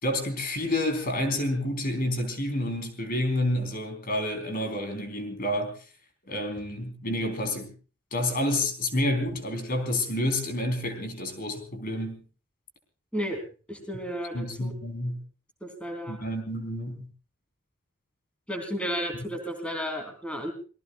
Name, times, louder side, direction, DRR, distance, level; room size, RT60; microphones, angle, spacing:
voice 1, 0.0-5.7 6.3-7.7 8.1-12.2 14.3-15.2 16.1-17.1, left 1 dB, 45° left, 7 dB, 3.9 m, -29 dB
voice 2, 13.7-14.7 15.6-16.2 18.5-20.5, equal, 5° left, 5 dB, 3.5 m, -33 dB
28.0 x 19.5 x 2.4 m, 0.37 s
head